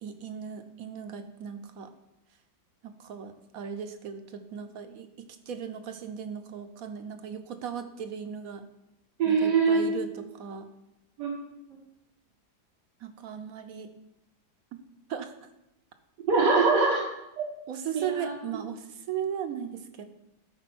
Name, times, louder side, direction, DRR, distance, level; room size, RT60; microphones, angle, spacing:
voice 1, 0.0-1.9 2.8-8.7 9.3-10.7 13.0-13.9 15.1-15.3 17.7-20.0, right 8 dB, 60° right, 8 dB, 1.2 m, -37 dB
voice 2, 9.2-10.0 11.2-11.5 16.3-17.0 17.4-17.5 17.9-18.3, right 4 dB, 90° right, -3 dB, 2.0 m, -23 dB
12.5 x 4.9 x 6.1 m, 0.88 s
omnidirectional pair, 1.8 m